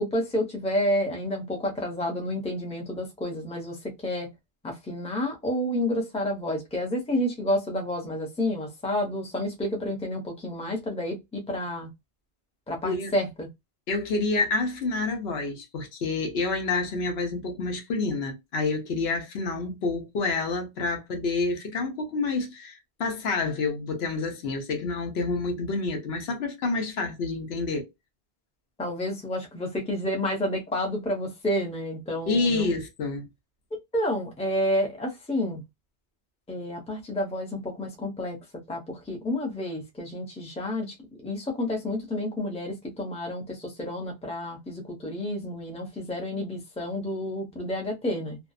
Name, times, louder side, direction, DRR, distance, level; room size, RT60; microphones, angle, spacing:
voice 1, 0.0-4.3 4.6-11.9 12.7-13.5 28.8-32.8 33.9-35.6 36.5-38.4 38.7-41.0 41.2-48.4, left 1 dB, 10° left, 0.5 m, -30 dB
voice 2, 13.9-27.9 32.3-33.3, left 3 dB, 70° left, 0.9 m, -28 dB
2.6 x 2.1 x 2.3 m
omnidirectional pair, 1.1 m